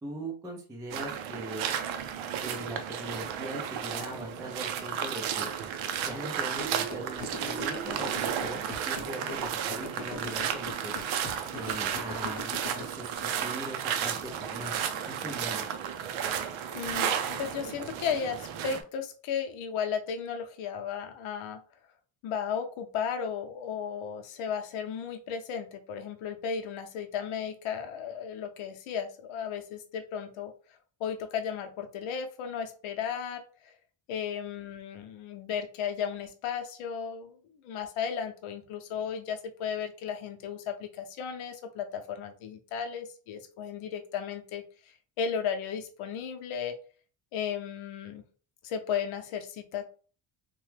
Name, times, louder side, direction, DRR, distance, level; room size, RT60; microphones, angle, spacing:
voice 1, 0.0-1.8 2.4-5.5 6.0-8.6 8.9-11.0 11.5-14.8 15.1-15.7, right 1 dB, 10° right, 0 dB, 0.4 m, -40 dB
sound 1, 0.9-18.8, right 8 dB, 75° right, 0.6 m, -33 dB
sound 2, 6.6-12.8, left 3 dB, 20° left, 0.9 m, -39 dB
voice 2, 16.7-21.6 22.2-30.5 31.0-33.7 34.1-44.6 45.2-46.8 47.3-48.2 48.6-49.8, left 7 dB, 80° left, 6 dB, 0.7 m, -35 dB
3.0 x 2.2 x 3.2 m, 0.39 s
cardioid pair, 155°, 48 cm